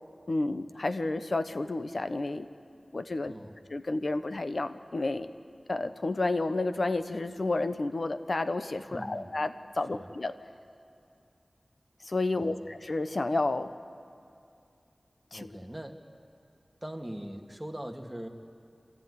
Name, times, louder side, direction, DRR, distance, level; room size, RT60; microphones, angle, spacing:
voice 1, 0.3-2.5 2.9-3.3 3.7-5.3 5.7-10.3 12.0-13.7 15.3-15.5, left 2 dB, 60° left, 10 dB, 1.0 m, -31 dB
voice 2, 3.2-3.6 8.9-9.3 9.9-10.1 12.3-12.7 15.3-16.0 16.8-18.3, equal, 10° right, 2 dB, 2.0 m, -41 dB
29.5 x 13.5 x 9.7 m, 2.5 s
wide cardioid pair, 65°, 0 cm